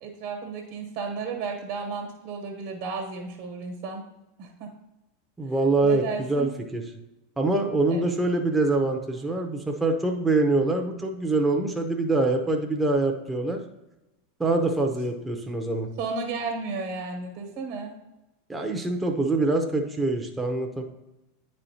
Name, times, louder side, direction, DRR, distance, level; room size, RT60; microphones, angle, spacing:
voice 1, 0.0-4.0 4.4-4.7 5.8-6.5 7.9-8.1 16.0-17.9, right 4 dB, 55° right, 1 dB, 1.3 m, -33 dB
voice 2, 5.4-6.8 7.4-13.6 14.4-15.9 18.5-20.8, right 2 dB, 10° right, 2 dB, 0.7 m, -24 dB
9.7 x 4.3 x 2.7 m, 0.96 s
hypercardioid pair, 100°, 0 cm